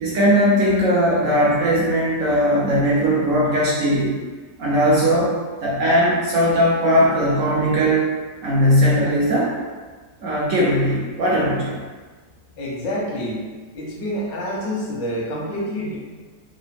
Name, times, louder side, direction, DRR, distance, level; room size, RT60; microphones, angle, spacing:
voice 1, 0.0-4.1 4.6-8.1 8.4-9.5 10.2-11.8, equal, 65° right, -6 dB, 0.9 m, -19 dB
voice 2, 12.6-13.5 13.7-16.0, equal, 85° left, -3 dB, 1.5 m, -27 dB
3.8 x 2.5 x 3.4 m, 1.4 s
omnidirectional pair, 1.9 m